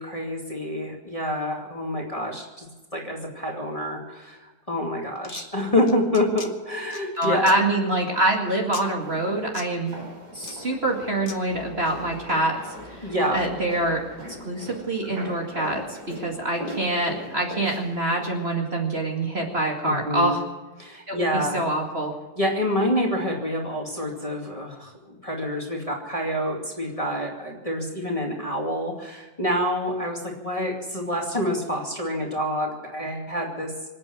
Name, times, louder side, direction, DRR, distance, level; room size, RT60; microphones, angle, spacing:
voice 1, 0.0-2.7 2.9-7.5 13.0-13.4 19.8-20.3 20.8-21.6 22.4-33.7, equal, 20° left, -1 dB, 2.4 m, -27 dB
sound 1, 5.1-5.4 5.9-6.5 6.9-7.6 8.7-8.8 9.5-9.7 10.4-10.5 11.3-11.4, left 4 dB, 35° left, 1.1 m, -38 dB
voice 2, 7.2-10.0 10.3-12.6 12.9-14.0 14.4-20.4 21.1-22.1, right 1 dB, 30° right, 0 dB, 2.3 m, -25 dB
sound 2, 9.0-18.5, right 1 dB, 85° right, 5.1 m, -40 dB
26.0 x 8.8 x 6.2 m, 1.2 s
omnidirectional pair, 2.0 m